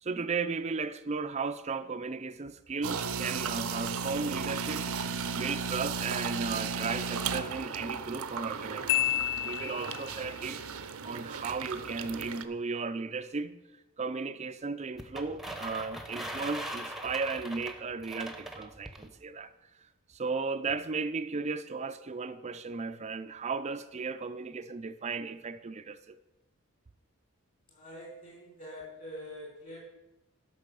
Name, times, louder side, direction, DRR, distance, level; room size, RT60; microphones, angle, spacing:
voice 1, 0.0-4.9 5.3-10.6 11.0-13.6 14.0-19.5 20.1-26.1, right 4 dB, 30° right, 0.4 m, -35 dB
sound 1, 2.8-12.4, right 5 dB, 75° right, 0.7 m, -35 dB
Marimba xylophone, 8.9-10.3, left 15 dB, 55° left, 0.3 m, -30 dB
sound 2, 15.0-19.1, right 1 dB, ahead, 0.8 m, -40 dB
voice 2, 27.7-29.8, left 1 dB, 40° left, 4.0 m, -45 dB
12.0 x 5.6 x 6.8 m
head